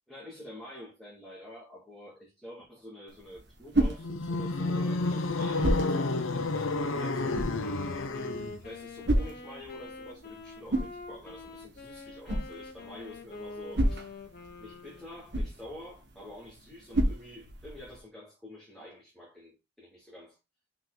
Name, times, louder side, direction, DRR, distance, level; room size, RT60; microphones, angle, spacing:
voice 1, 0.1-7.7 8.2-8.4 8.6-14.1 14.6-20.4, left 1 dB, ahead, 2.1 m, -48 dB
sound 1, 3.1-18.0, right 1 dB, 55° right, 1.3 m, -34 dB
sound 2, 4.0-8.7, left 2 dB, 85° left, 0.8 m, -30 dB
Wind instrument woodwind instrument, 7.0-15.4, left 3 dB, 50° left, 1.2 m, -45 dB
5.7 x 4.4 x 3.8 m
head